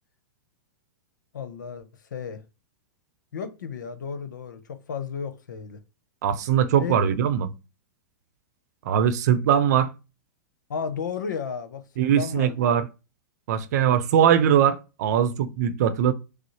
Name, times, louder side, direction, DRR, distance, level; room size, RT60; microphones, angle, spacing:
voice 1, 1.3-1.9 2.1-2.4 3.3-5.8 6.8-7.0 10.7-11.8 12.2-12.6, left 6 dB, 80° left, 0.9 m, -33 dB
voice 2, 6.2-7.5 8.8-9.9 12.0-12.9 13.5-16.1, right 9 dB, 65° right, 0.7 m, -21 dB
6.1 x 2.0 x 3.2 m
hypercardioid pair, 115°, 10 cm